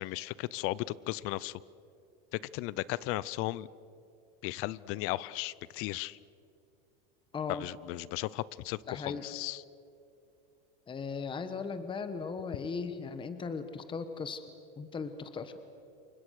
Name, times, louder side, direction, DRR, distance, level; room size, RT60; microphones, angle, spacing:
voice 1, 0.0-1.6 2.3-3.7 4.4-6.2 7.5-9.6, left 18 dB, 50° left, 21 dB, 0.7 m, -36 dB
voice 2, 7.3-7.7 8.9-9.2 10.9-14.4 14.8-15.6, left 5 dB, 15° left, 10 dB, 1.2 m, -37 dB
28.5 x 24.0 x 6.5 m, 2.6 s
supercardioid pair, 140°, 29 cm